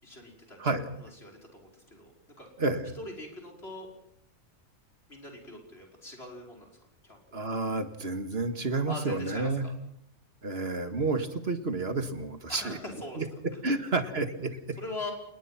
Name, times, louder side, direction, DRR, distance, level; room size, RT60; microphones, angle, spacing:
voice 1, 0.0-0.6 1.0-2.1 2.4-2.5 3.0-3.9 5.1-6.7 7.0-7.2 8.9-9.7 12.5-13.2 13.7-13.8 14.8-15.1, left 2 dB, 45° left, 1 dB, 5.8 m, -42 dB
voice 2, 0.6-0.9 2.6-2.9 7.3-9.7 10.4-12.8 13.2-13.3 13.6-14.6, right 3 dB, 45° right, 8 dB, 2.1 m, -30 dB
27.5 x 21.0 x 5.9 m, 0.75 s
omnidirectional pair, 1.5 m